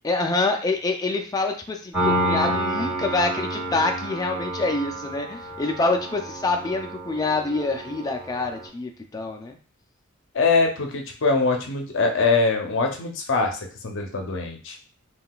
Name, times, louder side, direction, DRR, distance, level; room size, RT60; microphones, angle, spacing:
voice 1, 0.0-9.6, left 3 dB, 20° left, 3 dB, 0.4 m, -26 dB
Piano, 1.9-8.7, right 1 dB, 10° right, 1.4 m, -29 dB
voice 2, 10.3-14.8, left 4 dB, 60° left, 3 dB, 0.6 m, -23 dB
3.6 x 2.3 x 2.3 m, 0.39 s
head